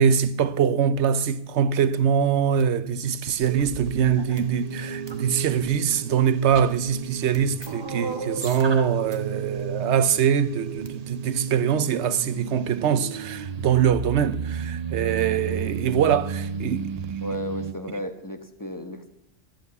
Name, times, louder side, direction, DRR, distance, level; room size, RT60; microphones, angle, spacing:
voice 1, 0.0-17.2, right 8 dB, 85° right, 1.0 m, -23 dB
sound 1, 2.6-2.7 3.2-4.4 5.1-5.7 6.4-7.0 7.3-9.2 9.4-9.6 10.7-10.9, right 3 dB, 25° right, 1.3 m, -36 dB
sound 2, 3.5-17.7, right 6 dB, 45° right, 0.6 m, -33 dB
voice 2, 17.2-19.2, left 1 dB, 20° left, 1.0 m, -34 dB
13.0 x 8.3 x 8.0 m
omnidirectional pair, 1.1 m